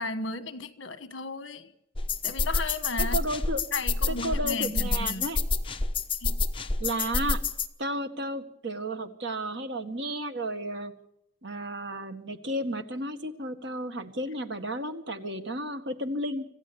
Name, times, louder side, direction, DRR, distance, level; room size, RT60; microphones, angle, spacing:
voice 1, 0.0-1.7 2.2-3.2 3.7-5.3 6.2-6.4, left 3 dB, 65° left, 1.4 m, -35 dB
sound 1, 2.0-7.7, left 3 dB, 25° left, 1.1 m, -28 dB
voice 2, 3.0-3.6 4.1-5.4 6.8-7.4 7.8-10.9 11.4-16.4, right 1 dB, 60° right, 1.8 m, -33 dB
26.0 x 15.0 x 7.1 m
head